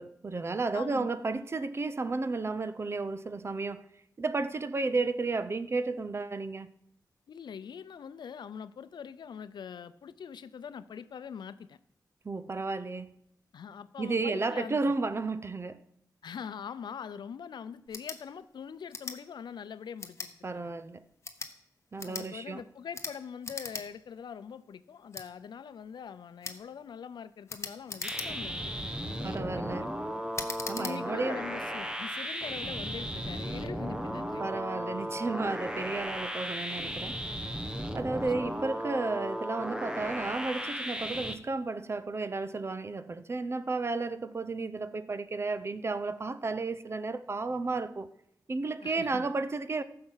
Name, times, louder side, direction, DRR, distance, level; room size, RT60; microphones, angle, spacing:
voice 1, 0.0-3.8 4.2-6.7 12.2-13.1 14.0-15.8 20.4-21.1 21.9-22.6 29.2-29.9 30.7-31.4 34.4-37.2 37.9-48.1 48.5-49.8, right 3 dB, 35° right, 0.6 m, -33 dB
voice 2, 0.7-1.5 7.3-11.8 13.5-14.9 16.2-20.7 22.0-30.2 30.7-34.6 38.0-38.6 48.8-49.3, left 7 dB, 85° left, 0.6 m, -43 dB
sound 1, 17.9-18.2 18.9-19.2 20.0-20.3 21.1-21.5 22.0-22.3 22.9-23.1 23.4-23.9 24.2-24.3 25.1-25.3 26.4-26.6 27.5-28.5 29.1-29.4 30.3-31.0, left 4 dB, 40° left, 1.1 m, -39 dB
sound 2, 28.0-41.3, equal, 10° right, 1.0 m, -35 dB
sound 3, 32.5-38.2, right 2 dB, 75° right, 1.8 m, -54 dB
14.0 x 6.6 x 5.7 m
wide cardioid pair, 110°, 7 cm